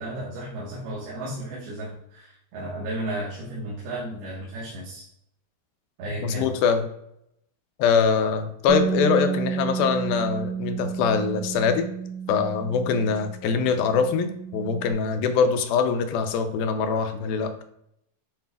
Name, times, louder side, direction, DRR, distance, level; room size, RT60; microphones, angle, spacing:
voice 1, 0.0-5.1 6.0-6.5, right 1 dB, 80° right, -6 dB, 3.3 m, -34 dB
voice 2, 6.2-6.9 7.8-11.9 12.3-17.5, left 6 dB, 80° left, 7 dB, 2.4 m, -23 dB
Bass guitar, 8.7-14.9, right 7 dB, 50° right, 2.6 m, -31 dB
9.2 x 4.7 x 2.3 m, 0.77 s
omnidirectional pair, 4.4 m